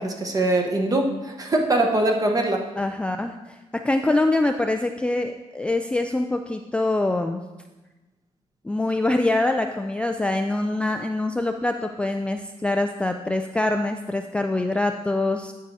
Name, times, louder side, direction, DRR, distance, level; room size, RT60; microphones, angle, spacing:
voice 1, 0.0-2.6, right 2 dB, 30° right, 2 dB, 1.2 m, -22 dB
voice 2, 2.8-3.6 3.8-7.4 8.6-15.5, left 2 dB, 10° left, 5 dB, 0.3 m, -24 dB
9.7 x 4.7 x 4.1 m, 1.1 s
cardioid pair, 110°, 12 cm